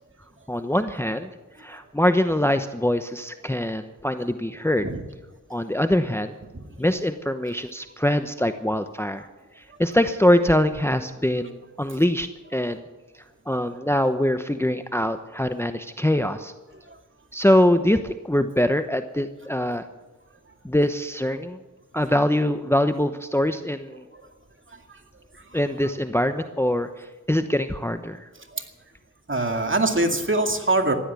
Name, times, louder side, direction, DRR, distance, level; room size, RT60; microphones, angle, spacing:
voice 1, 0.5-1.3 1.6-4.9 5.5-6.4 6.8-9.3 9.6-12.8 13.5-16.5 17.3-19.8 20.6-21.6 21.9-24.0 25.5-28.3, left 1 dB, 10° left, 9 dB, 0.9 m, -23 dB
voice 2, 29.3-30.9, right 2 dB, 40° right, 5 dB, 2.3 m, -22 dB
15.5 x 11.5 x 8.3 m, 1.1 s
cardioid pair, 40°, 32 cm